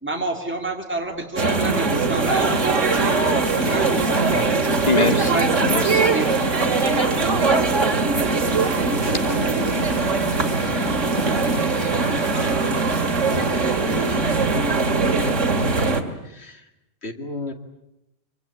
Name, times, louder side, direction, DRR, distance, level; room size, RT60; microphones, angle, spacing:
voice 1, 0.0-4.7 5.0-5.7 6.0-6.6, right 2 dB, 10° right, 2 dB, 2.9 m, -29 dB
sound 1, 1.0-15.9, right 1 dB, 35° right, 4.5 m, -42 dB
sound 2, 1.4-16.0, right 3 dB, 85° right, 2.5 m, -21 dB
voice 2, 4.8-6.0 8.5-10.7 11.1-11.3 12.2-12.3 12.9-13.0 13.3-13.4, left 3 dB, 35° left, 5 dB, 2.4 m, -28 dB
voice 3, 16.2-16.6 17.0-17.5, left 3 dB, 55° left, 5 dB, 2.6 m, -35 dB
25.5 x 25.0 x 8.8 m, 0.88 s
omnidirectional pair, 1.3 m